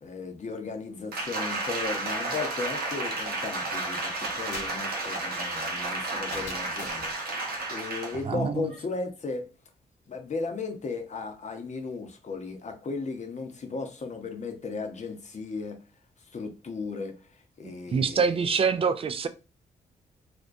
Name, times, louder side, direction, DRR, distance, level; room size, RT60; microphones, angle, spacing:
voice 1, 0.0-9.5 10.1-15.8 16.3-17.2 17.6-18.5, left 4 dB, 40° left, 0.7 m, -36 dB
Applause, 1.1-8.3 8.7-8.8, right 2 dB, 60° right, 0.7 m, -32 dB
sound 1, 4.2-7.1, left 4 dB, 80° left, 0.5 m, -46 dB
voice 2, 8.2-8.7 17.6-19.3, right 5 dB, 35° right, 0.4 m, -26 dB
2.4 x 2.1 x 2.5 m
hypercardioid pair, 40°, 18 cm